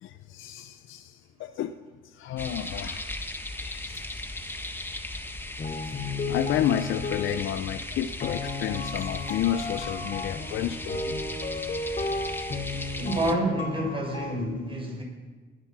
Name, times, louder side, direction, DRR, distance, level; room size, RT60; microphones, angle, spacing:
voice 1, 0.0-1.7 2.1-3.2 3.6-4.2 5.9-11.2, left 11 dB, 80° left, 9 dB, 0.7 m, -31 dB
sound 1, 2.4-13.3, left 1 dB, 10° left, 1.4 m, -37 dB
sound 2, 5.6-7.8 8.2-14.4, left 3 dB, 35° left, 3.2 m, -34 dB
voice 2, 13.0-15.0, right 1 dB, 25° right, 0 dB, 6.1 m, -28 dB
19.0 x 11.5 x 6.0 m, 1.4 s
cardioid pair, 90°, 20 cm